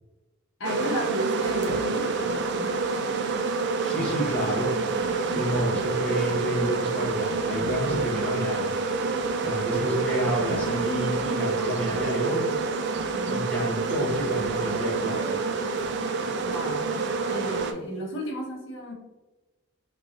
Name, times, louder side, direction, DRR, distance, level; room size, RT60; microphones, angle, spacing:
voice 1, 0.6-3.2 5.0-5.5 13.1-13.5 16.4-17.0 17.3-18.9, equal, 60° left, -3 dB, 1.1 m, -34 dB
sound 1, 0.6-17.7, right 4 dB, 50° right, 0.4 m, -28 dB
sound 2, 1.4-17.7, right 1 dB, 85° right, 0.8 m, -44 dB
voice 2, 3.8-4.8 5.3-8.8 9.4-12.6 13.3-15.3, equal, 5° left, -6 dB, 0.7 m, -29 dB
3.7 x 3.3 x 2.5 m, 1.1 s
head